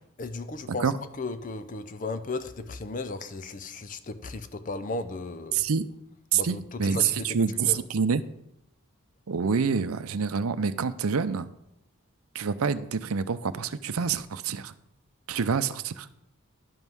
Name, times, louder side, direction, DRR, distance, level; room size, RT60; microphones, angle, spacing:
voice 1, 0.2-0.9 1.2-5.6 6.3-7.4 7.7-7.8, left 3 dB, 40° left, 11 dB, 0.5 m, -35 dB
voice 2, 5.5-5.8 6.3-8.2 9.3-11.5 12.3-14.7 15.3-16.1, right 6 dB, 85° right, 13 dB, 0.6 m, -27 dB
11.0 x 5.5 x 6.1 m, 0.81 s
head